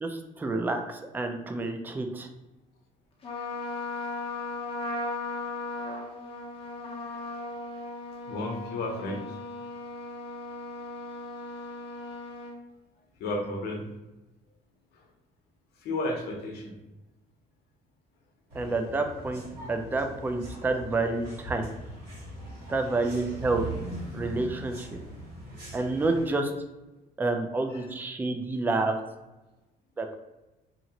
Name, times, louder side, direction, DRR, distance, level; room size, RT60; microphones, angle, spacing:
voice 1, 0.0-2.3 18.5-19.4 19.7-21.6 22.7-23.7 24.1-25.0 25.7-26.5 27.2-29.0 30.0-30.1, right 3 dB, 10° right, 5 dB, 0.3 m, -29 dB
Trumpet, 3.2-12.6, left 2 dB, 35° left, 0.7 m, -37 dB
voice 2, 3.4-3.7 8.3-9.4 13.2-13.8 15.8-16.7 18.6-18.7 27.7-27.9, left 1 dB, 70° left, 2 dB, 0.7 m, -33 dB
sound 1, 18.5-26.3, right 1 dB, 80° right, 1.4 m, -41 dB
2.9 x 2.5 x 2.8 m, 1.0 s
cardioid pair, 110°, 17 cm